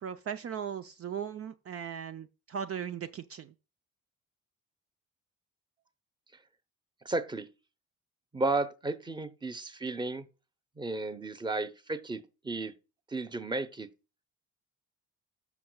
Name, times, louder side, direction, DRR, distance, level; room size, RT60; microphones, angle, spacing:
voice 1, 0.0-3.5, right 8 dB, 50° right, 0.6 m, -38 dB
voice 2, 7.0-7.5 8.3-10.3 10.8-12.7 13.1-13.9, right 2 dB, 15° right, 0.9 m, -33 dB
14.0 x 5.9 x 2.3 m
cardioid pair, 90°, 30 cm